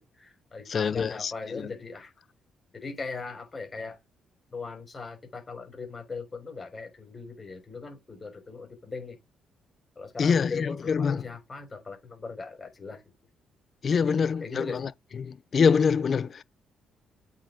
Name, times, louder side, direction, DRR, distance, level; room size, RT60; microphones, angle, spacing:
voice 1, 0.0-2.1 2.7-4.0 4.5-9.2 10.0-13.0 13.9-14.9, left 4 dB, 30° left, 6.3 m, -39 dB
voice 2, 0.7-1.7 10.2-11.2 13.8-14.9 15.2-16.4, left 6 dB, 45° left, 0.6 m, -25 dB
8.5 x 6.4 x 5.1 m
cardioid pair, 90°, 0 cm